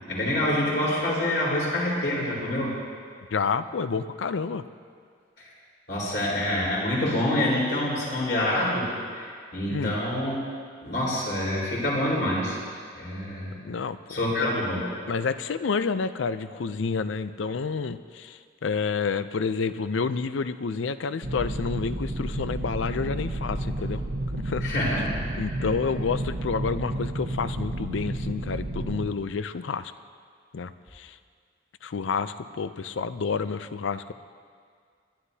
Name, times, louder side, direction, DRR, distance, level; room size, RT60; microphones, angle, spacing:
voice 1, 0.1-2.7 5.4-5.5 5.9-8.9 9.2-10.3 10.8-12.6 12.9-13.5 14.1-14.8 24.6-25.2, left 1 dB, 60° left, -6 dB, 4.3 m, -26 dB
voice 2, 3.3-4.7 9.7-9.9 13.5-14.5 15.1-24.0 24.3-24.7 25.4-29.9 30.5-31.2 31.8-34.1, left 5 dB, 80° left, 13 dB, 0.5 m, -29 dB
sound 1, 21.2-29.1, right 1 dB, 60° right, 1.0 m, -31 dB
27.5 x 11.5 x 2.8 m, 2.1 s
head